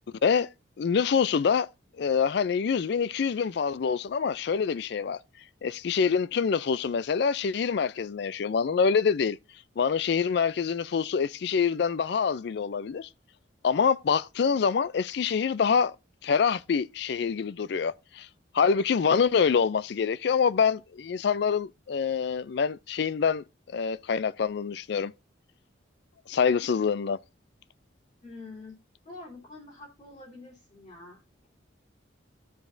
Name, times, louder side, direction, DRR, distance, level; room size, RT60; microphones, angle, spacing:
voice 1, 0.8-1.7 2.0-5.2 5.6-9.4 9.8-13.1 13.6-16.0 16.2-18.3 18.5-25.1 26.3-27.2, left 6 dB, 55° left, 0.4 m, -26 dB
voice 2, 28.2-28.7 29.0-31.5, left 2 dB, 35° left, 3.3 m, -46 dB
13.5 x 4.9 x 2.6 m
head